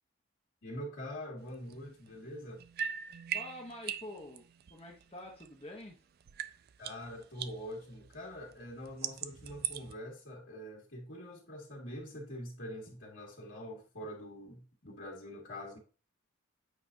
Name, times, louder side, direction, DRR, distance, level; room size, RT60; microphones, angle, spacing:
voice 1, 0.6-2.6 6.8-15.8, equal, 65° left, 2.0 m, -44 dB
sound 1, 1.5-5.9 6.2-10.0, right 9 dB, 50° right, 0.4 m, -42 dB
voice 2, 3.3-4.4 4.7-6.0, left 1 dB, 30° left, 0.8 m, -46 dB
8.3 x 4.9 x 2.6 m
head